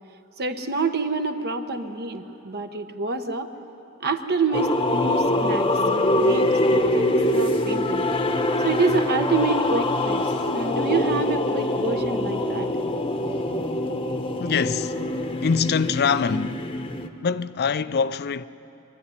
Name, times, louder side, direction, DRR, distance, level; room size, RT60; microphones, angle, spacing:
voice 1, 0.4-3.5 4.0-8.1 8.6-10.2 10.5-12.7, right 4 dB, 45° right, 1.1 m, -27 dB
sound 1, 4.5-17.1, left 1 dB, 25° left, 0.9 m, -24 dB
voice 2, 14.4-15.0 15.4-16.7 17.2-18.4, left 6 dB, 45° left, 0.4 m, -24 dB
24.0 x 12.5 x 9.7 m
head